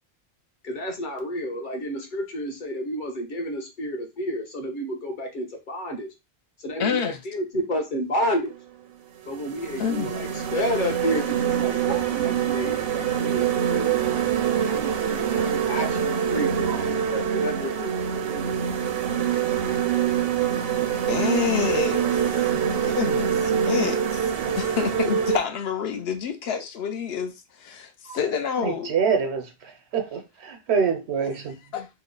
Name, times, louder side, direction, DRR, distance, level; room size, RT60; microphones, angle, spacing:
voice 1, 0.6-6.1 6.6-8.5 9.3-13.9 14.6-18.5, equal, 55° left, 1.0 m, -31 dB
voice 2, 6.8-7.2 9.8-10.1 21.1-28.9 31.7-31.9, left 7 dB, 75° left, 0.9 m, -28 dB
sound 1, 8.5-8.6 9.2-25.4, right 8 dB, 70° right, 0.8 m, -25 dB
voice 3, 28.6-31.5, right 6 dB, 90° right, 1.0 m, -26 dB
3.1 x 2.1 x 3.7 m
omnidirectional pair, 1.1 m